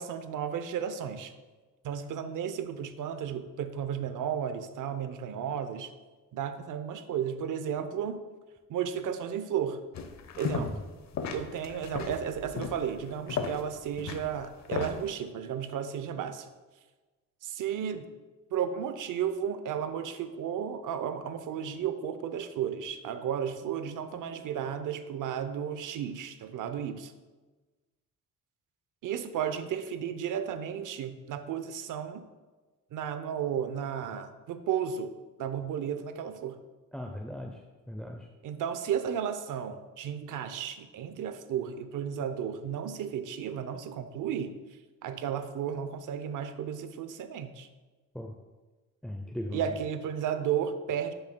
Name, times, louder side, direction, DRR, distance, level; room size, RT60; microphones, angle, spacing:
voice 1, 0.0-1.3 1.8-5.9 6.3-8.2 8.7-9.8 10.4-10.7 11.3-16.5 17.4-18.1 18.5-27.1 29.0-32.2 32.9-35.1 35.4-36.6 38.4-44.5 45.0-47.7 49.5-51.1, right 8 dB, 70° right, 10 dB, 0.7 m, -33 dB
sound 1, 9.9-10.9 11.1-15.0, left 6 dB, 60° left, 0.7 m, -35 dB
voice 2, 36.9-37.6 37.9-38.3 48.1-48.3 49.0-49.7, left 1 dB, 5° left, 2 dB, 0.5 m, -38 dB
10.0 x 5.5 x 2.2 m, 1.3 s
cardioid pair, 80°, 32 cm